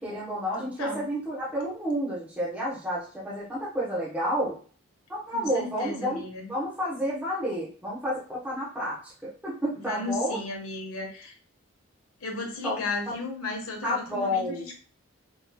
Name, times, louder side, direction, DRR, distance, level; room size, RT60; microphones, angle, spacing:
voice 1, 0.0-4.6 5.1-6.2 6.5-10.4 12.6-13.1 13.8-14.7, equal, 5° right, -7 dB, 1.0 m, -30 dB
voice 2, 0.5-1.0 5.3-6.5 9.7-11.3 12.2-14.8, left 3 dB, 85° left, 0 dB, 1.3 m, -35 dB
5.1 x 3.2 x 2.3 m, 0.41 s
head